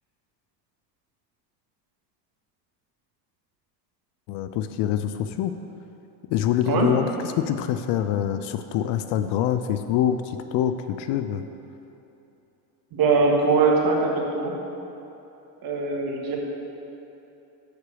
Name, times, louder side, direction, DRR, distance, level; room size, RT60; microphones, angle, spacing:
voice 1, 4.3-5.5 6.3-11.4, left 10 dB, 60° left, 10 dB, 0.5 m, -25 dB
voice 2, 12.9-14.5 15.6-16.4, right 4 dB, 45° right, 0 dB, 1.5 m, -21 dB
6.6 x 5.0 x 6.8 m, 2.9 s
supercardioid pair, 95°, 50 cm